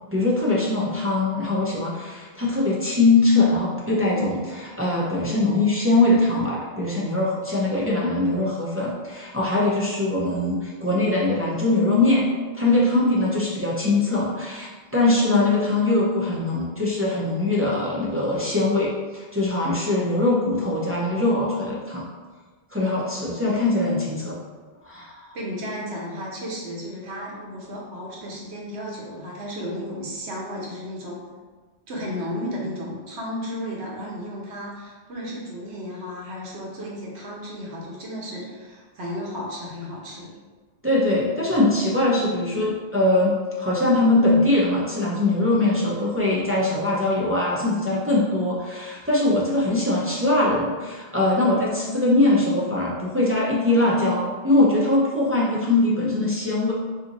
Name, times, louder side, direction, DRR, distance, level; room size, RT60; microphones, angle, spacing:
voice 1, 0.1-12.2 12.5-22.0 22.7-24.3 24.8-25.2 40.8-56.7, left 2 dB, 25° right, -6 dB, 0.3 m, -22 dB
voice 2, 25.3-31.2 31.9-40.3, equal, 85° right, -3 dB, 1.1 m, -33 dB
2.7 x 2.5 x 3.9 m, 1.4 s
omnidirectional pair, 1.1 m